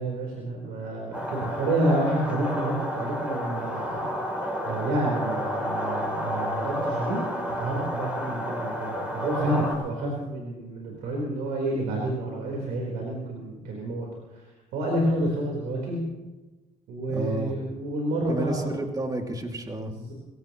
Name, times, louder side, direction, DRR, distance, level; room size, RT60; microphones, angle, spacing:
voice 1, 0.0-4.1 4.6-16.0 16.9-18.7 19.9-20.1, right 1 dB, 90° right, -2 dB, 4.2 m, -29 dB
sound 1, 1.1-9.8, equal, 10° right, 5.0 m, -31 dB
voice 2, 17.1-17.5 18.3-19.9, right 2 dB, 25° right, 3 dB, 2.4 m, -31 dB
24.5 x 17.0 x 3.1 m, 1.1 s
cardioid pair, 90°, 16 cm